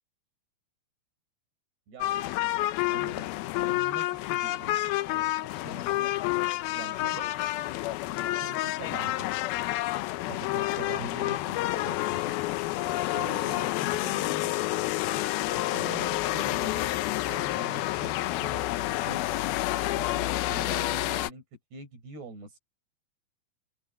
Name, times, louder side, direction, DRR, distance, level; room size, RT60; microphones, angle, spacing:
sound 1, 2.0-21.3, left 16 dB, 80° left, 2.5 m, -29 dB
voice 1, 2.9-3.3 3.6-4.8 5.1-6.2 6.7-7.3 8.4-9.4 10.3-12.4 13.1-14.6 15.5-16.9 17.2-18.7 19.0-19.3 19.9-21.4 21.7-22.6, right 3 dB, 85° right, 7.5 m, -43 dB
open air
omnidirectional pair, 4.6 m